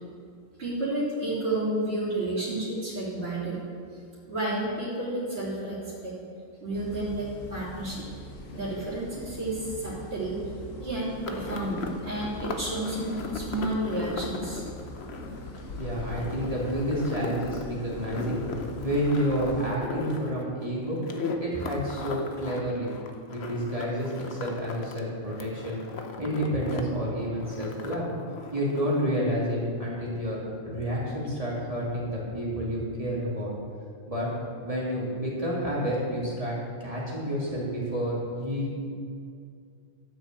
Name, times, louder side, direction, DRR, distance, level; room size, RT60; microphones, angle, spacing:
voice 1, 0.6-3.6 4.3-6.2 6.6-8.1 8.5-10.4 10.8-14.6, right 1 dB, 45° right, -11 dB, 3.6 m, -31 dB
sound 1, 6.7-19.7, left 1 dB, 75° left, 1.7 m, -41 dB
sound 2, 11.2-25.0 25.3-26.8 27.1-29.0, left 4 dB, 55° left, 1.1 m, -38 dB
voice 2, 15.8-18.4 18.8-21.0 21.4-22.9 23.3-25.8 26.2-28.1 28.5-30.4 30.6-33.5 34.1-34.3 34.6-36.5 36.8-38.8, equal, 25° right, -6 dB, 3.2 m, -29 dB
12.5 x 6.6 x 7.7 m, 2.3 s
omnidirectional pair, 1.4 m